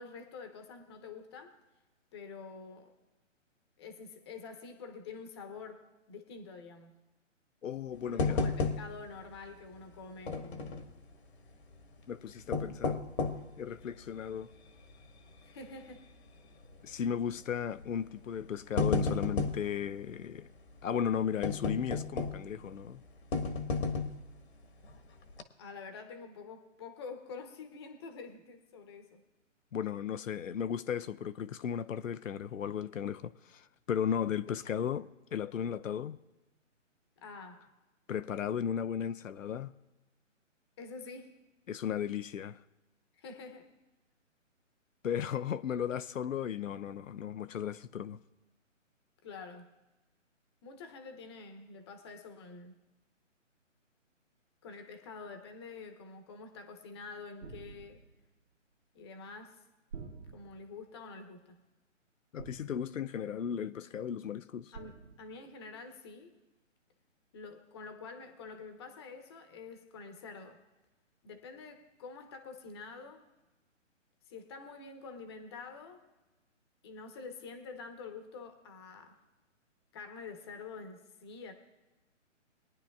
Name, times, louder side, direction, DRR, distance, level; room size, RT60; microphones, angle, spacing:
voice 1, 0.0-1.6 2.1-3.0 3.8-6.9 8.1-10.9 15.4-16.1 25.6-29.2 37.2-37.7 40.8-41.4 43.1-43.7 49.2-49.7 50.6-52.8 54.6-58.0 58.9-59.6 60.3-61.6 64.7-66.3 67.3-70.6 71.2-73.3 74.3-76.1 76.8-79.2 79.9-81.5, left 4 dB, 20° left, 0.9 m, -47 dB
voice 2, 7.6-8.4 12.1-13.0 13.6-14.5 16.8-20.5 20.8-23.0 29.7-36.2 38.1-39.7 41.7-42.6 45.0-48.2 62.3-64.7, left 8 dB, 85° left, 0.6 m, -35 dB
sound 1, 8.2-9.2 9.4-9.5 10.3-10.9 12.3-13.5 14.1-14.2 14.8-15.1 15.4-15.5 16.6-16.9 17.8-18.0 18.4-19.7 21.4-22.6 23.3-24.3 24.8-25.0 25.3-25.4, left 4 dB, 55° left, 1.3 m, -32 dB
sound 2, 57.4-58.2 59.9-60.7 62.4-63.1 64.7-65.4, right 5 dB, 70° right, 2.0 m, -48 dB
22.0 x 10.0 x 2.4 m
hypercardioid pair, 155°, 38 cm